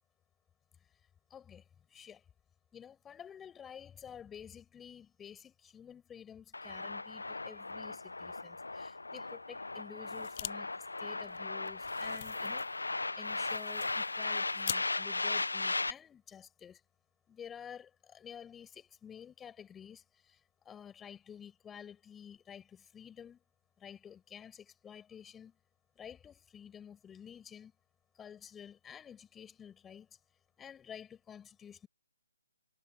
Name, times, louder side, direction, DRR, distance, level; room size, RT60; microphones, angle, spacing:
voice 1, 1.3-1.6 1.9-2.2 2.7-16.8 17.3-20.4 20.6-23.4 23.8-25.5 26.0-27.7 28.2-30.1 30.6-31.9, left 8 dB, 10° left, 7.8 m, -51 dB
sound 1, 6.5-15.9, left 3 dB, 80° left, 0.8 m, -37 dB
sound 2, 10.1-10.5 10.8-10.9 11.2-14.8, left 12 dB, 35° left, 0.6 m, -44 dB
figure-of-eight pair, 145°, 0 cm